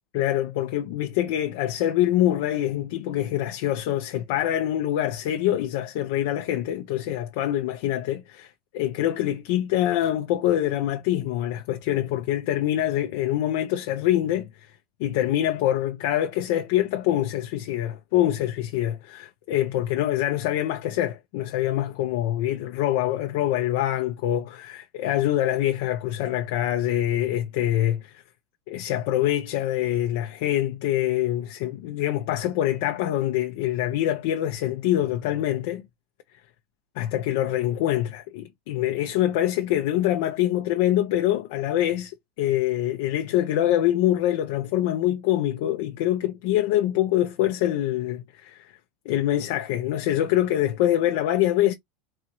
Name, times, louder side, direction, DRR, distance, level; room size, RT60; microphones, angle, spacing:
voice 1, 0.1-14.7 15.0-28.2 28.7-35.8 37.0-48.6 49.0-51.7, left 13 dB, 55° left, 0.7 m, -25 dB
4.2 x 2.6 x 4.5 m
supercardioid pair, 175°, 0 cm